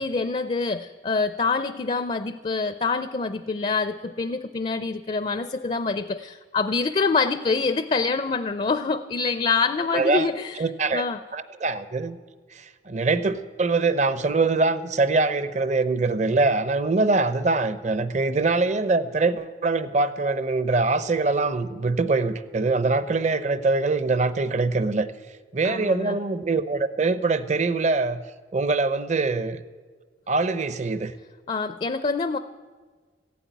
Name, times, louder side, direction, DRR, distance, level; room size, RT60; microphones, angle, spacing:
voice 1, 0.0-10.6 10.9-11.2 25.6-26.2 31.5-32.4, left 4 dB, 35° left, 11 dB, 0.4 m, -26 dB
voice 2, 9.9-10.3 10.6-11.0 11.3-12.2 12.5-25.1 25.5-28.2 28.5-29.6 30.3-31.1, right 3 dB, 40° right, 13 dB, 0.6 m, -23 dB
15.0 x 8.5 x 9.1 m, 1.5 s
head